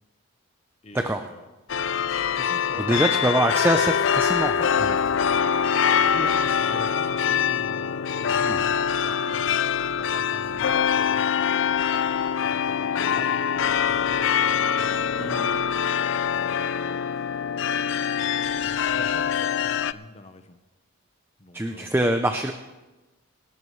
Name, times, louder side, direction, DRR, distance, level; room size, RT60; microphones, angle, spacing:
voice 1, 0.8-1.4 2.3-3.0 6.1-11.9 12.4-15.6 16.3-17.1 18.3-20.6 21.4-22.0, left 2 dB, 30° left, 8 dB, 0.9 m, -44 dB
sound 1, 1.7-19.9, left 7 dB, 60° left, 0.4 m, -24 dB
voice 2, 2.8-5.0 8.4-8.6 15.2-15.6 21.5-22.5, right 1 dB, 10° right, 6 dB, 0.5 m, -24 dB
25.5 x 13.0 x 3.2 m, 1.1 s
head